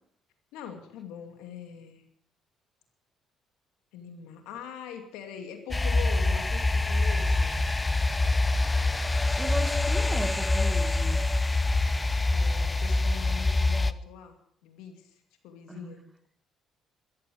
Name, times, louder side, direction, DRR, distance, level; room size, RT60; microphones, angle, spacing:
voice 1, 0.5-2.1 3.9-7.6 12.1-16.0, left 8 dB, 80° left, 6 dB, 2.5 m, -43 dB
sound 1, 5.7-13.9, left 2 dB, 20° left, 0.8 m, -25 dB
voice 2, 9.4-11.4 15.7-15.9, right 1 dB, 15° right, 9 dB, 2.0 m, -37 dB
14.0 x 13.0 x 7.0 m, 0.66 s
supercardioid pair, 65°, 0 cm